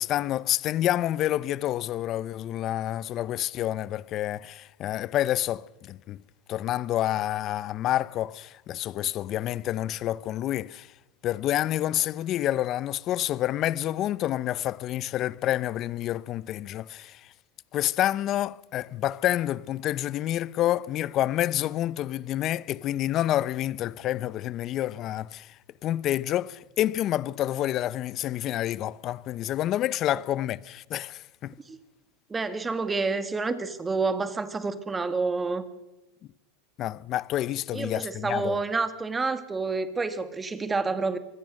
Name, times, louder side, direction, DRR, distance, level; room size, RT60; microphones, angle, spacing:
voice 1, 0.0-6.2 6.5-10.9 11.2-17.2 17.7-25.5 25.8-31.5 36.8-38.6, left 13 dB, 45° left, 0.7 m, -28 dB
voice 2, 32.3-35.6 37.7-41.2, right 4 dB, 15° right, 2.0 m, -29 dB
25.0 x 20.5 x 6.5 m
hypercardioid pair, 110°, 0 cm